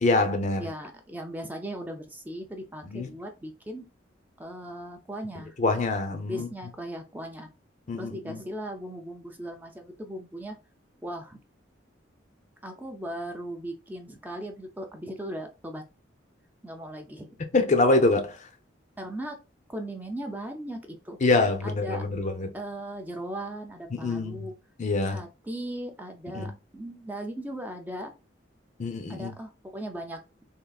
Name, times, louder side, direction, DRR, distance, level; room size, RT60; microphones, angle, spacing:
voice 1, 0.0-0.7 2.8-3.1 5.6-6.5 7.9-8.4 17.5-18.4 21.2-22.5 23.9-24.5 24.8-25.2 26.3-26.5 28.8-29.3, left 2 dB, 40° left, 0.5 m, -25 dB
voice 2, 0.6-3.8 4.4-5.6 6.3-7.5 7.9-10.6 11.0-11.4 12.6-15.8 16.6-17.4 19.0-19.4 19.7-21.2 21.6-22.0 22.5-24.5 25.1-28.1 29.1-30.2, right 1 dB, 10° right, 0.4 m, -38 dB
3.6 x 2.5 x 2.2 m
head